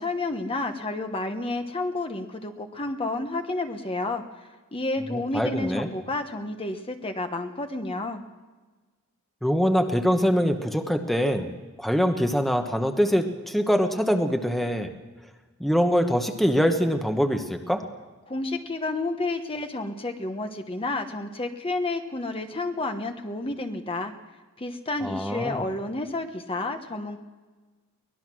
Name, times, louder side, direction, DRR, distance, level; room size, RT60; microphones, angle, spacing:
voice 1, 0.0-8.2 18.3-24.1 24.6-27.2, left 2 dB, 25° left, 6 dB, 1.1 m, -30 dB
voice 2, 5.1-5.9 9.4-11.5 11.8-14.9 15.6-17.8 25.0-25.7, equal, ahead, 5 dB, 1.1 m, -24 dB
23.5 x 19.0 x 6.2 m, 1.3 s
head